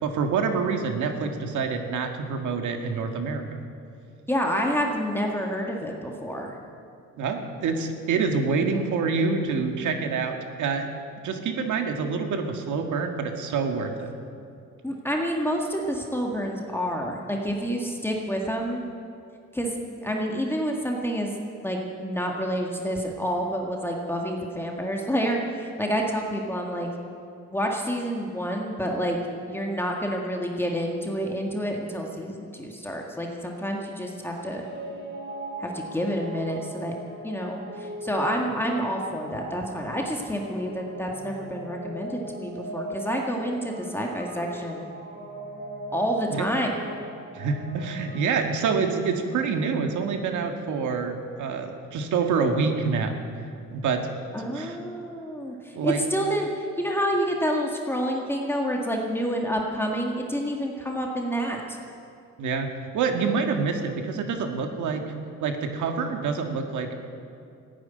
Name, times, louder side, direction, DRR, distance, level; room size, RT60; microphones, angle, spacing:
voice 1, 0.0-3.4 7.2-10.9 11.2-14.1 46.3-46.5 47.3-53.2 53.7-54.1 54.4-54.8 55.8-56.0 62.4-62.7 62.9-65.0 65.4-66.9, right 5 dB, 75° right, 5 dB, 1.9 m, -26 dB
voice 2, 4.3-6.5 14.8-18.8 19.5-21.3 21.6-26.9 27.5-29.2 29.5-34.6 35.6-36.9 37.2-44.8 45.9-46.8 54.3-61.8, equal, 5° left, 0 dB, 1.8 m, -28 dB
sound 1, 34.2-48.3, right 1 dB, 40° right, 3.6 m, -39 dB
15.5 x 9.7 x 9.5 m, 2.4 s
cardioid pair, 110°, 30 cm